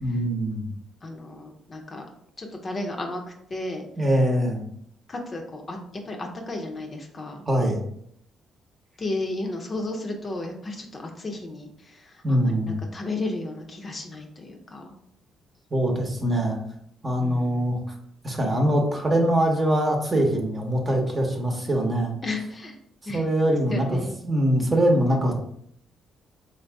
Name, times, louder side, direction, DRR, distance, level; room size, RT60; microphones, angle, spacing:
voice 1, 0.0-0.7 4.0-4.6 7.5-7.8 12.2-12.8 15.7-16.6 17.0-17.8 18.2-22.1 23.1-24.0 24.2-25.3, right 1 dB, 30° right, 1 dB, 0.9 m, -23 dB
voice 2, 1.0-2.0 2.4-3.2 3.5-3.8 5.1-5.8 6.0-7.5 9.0-14.9 17.2-17.8 22.2-22.8 23.1-23.2 23.7-24.2, left 2 dB, 35° left, 2 dB, 0.7 m, -33 dB
3.6 x 2.7 x 3.4 m, 0.71 s
cardioid pair, 90°, 0 cm